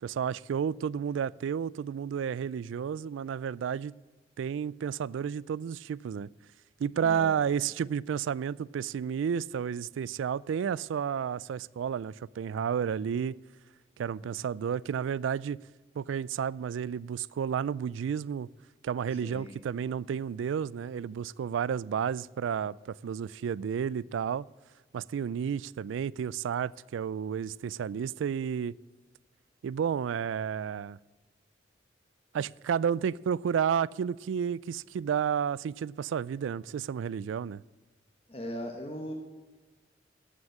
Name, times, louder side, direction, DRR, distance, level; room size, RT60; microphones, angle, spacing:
voice 1, 0.0-3.9 4.4-6.3 6.8-13.4 14.0-15.6 16.0-18.5 18.8-22.8 23.0-24.5 24.9-28.7 29.6-31.0 32.3-37.6, right 7 dB, 85° right, 0.3 m, -31 dB
voice 2, 7.0-7.4 19.2-19.6 38.3-39.1, equal, 30° left, 1.3 m, -39 dB
14.5 x 6.4 x 7.4 m
head